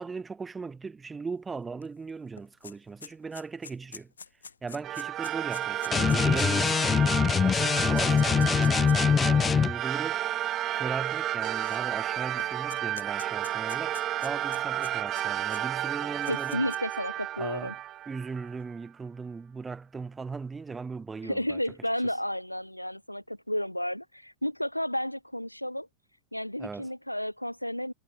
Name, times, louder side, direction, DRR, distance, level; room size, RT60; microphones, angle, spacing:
voice 1, 0.0-4.1 4.6-10.3 10.7-16.6 17.4-17.8 18.1-21.6 26.6-26.9, right 4 dB, 15° right, 5.2 m, -38 dB
sound 1, 1.8-1.9 2.2-9.1 9.9-10.0 11.0-12.1 12.4-15.6 16.0-17.0, left 6 dB, 70° left, 2.8 m, -46 dB
sound 2, 4.8-18.6, right 13 dB, 30° right, 0.6 m, -32 dB
sound 3, 5.9-9.7, left 6 dB, 20° left, 0.4 m, -23 dB
voice 2, 16.3-17.7 21.2-25.9 26.3-27.9, left 1 dB, 90° left, 0.7 m, -32 dB
figure-of-eight pair, 90°, 0 cm